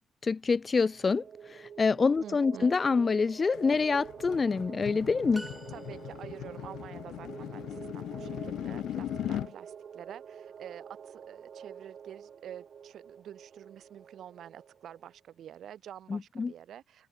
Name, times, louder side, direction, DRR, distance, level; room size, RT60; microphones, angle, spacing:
voice 1, 0.2-5.4 16.1-16.5, left 4 dB, 35° left, 0.7 m, -26 dB
sound 1, 0.8-15.1, right 7 dB, 55° right, 1.7 m, -47 dB
voice 2, 2.2-2.7 5.3-17.1, right 10 dB, 70° right, 4.2 m, -48 dB
sound 2, 3.5-9.5, left 12 dB, 80° left, 1.0 m, -39 dB
sound 3, 5.3-6.5, right 1 dB, 5° right, 2.2 m, -47 dB
cardioid pair, 90°, 0 cm